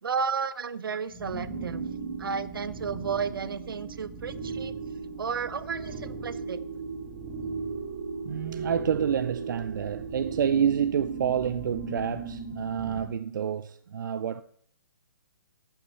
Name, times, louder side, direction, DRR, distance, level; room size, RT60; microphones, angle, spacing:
voice 1, 0.0-1.9 2.2-4.7 5.2-6.6, right 6 dB, 80° right, 0.9 m, -32 dB
sound 1, 1.1-13.1, right 4 dB, 40° right, 2.6 m, -37 dB
voice 2, 8.2-14.4, right 8 dB, 60° right, 0.5 m, -28 dB
13.0 x 5.9 x 6.8 m
hypercardioid pair, 155°, 11 cm